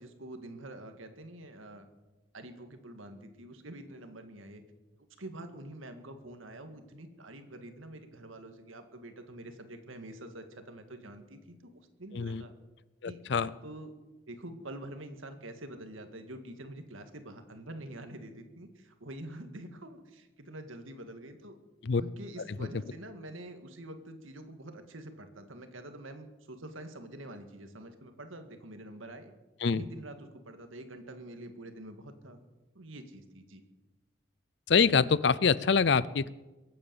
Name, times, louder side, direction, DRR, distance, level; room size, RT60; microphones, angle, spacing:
voice 1, 0.0-1.9 2.3-4.6 5.2-12.5 13.0-13.9 14.3-21.6 22.0-29.3 29.7-32.4 32.7-33.6, right 1 dB, 85° right, 7 dB, 1.9 m, -46 dB
voice 2, 13.0-13.5 21.8-22.0 29.6-29.8 34.7-36.3, left 5 dB, 60° left, 19 dB, 0.5 m, -25 dB
22.5 x 8.9 x 7.0 m, 1.1 s
head